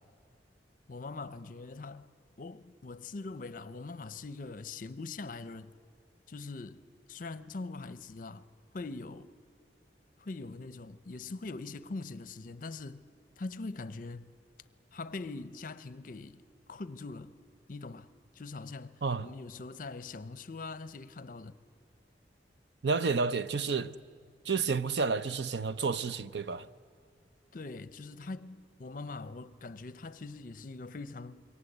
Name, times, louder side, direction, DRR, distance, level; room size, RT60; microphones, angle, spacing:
voice 1, 0.9-2.1 2.4-5.7 6.3-6.8 7.1-8.4 8.7-9.3 10.2-13.1 13.4-14.3 14.9-16.4 16.7-17.3 17.7-21.6 27.5-31.4, left 3 dB, 50° left, 0.7 m, -42 dB
voice 2, 22.8-23.9 24.4-26.7, right 4 dB, 75° right, 0.6 m, -30 dB
26.5 x 23.0 x 8.0 m
head